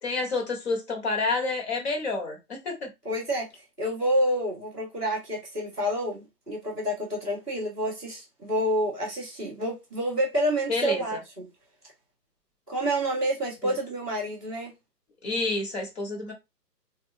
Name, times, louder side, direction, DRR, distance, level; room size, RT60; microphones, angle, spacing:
voice 1, 0.0-2.9 10.7-11.2 15.2-16.3, left 3 dB, 40° left, 1.5 m, -29 dB
voice 2, 3.0-3.5 3.8-11.5 12.7-14.7, right 1 dB, 5° left, 0.7 m, -28 dB
3.7 x 2.7 x 2.7 m
figure-of-eight pair, 145°, 50 cm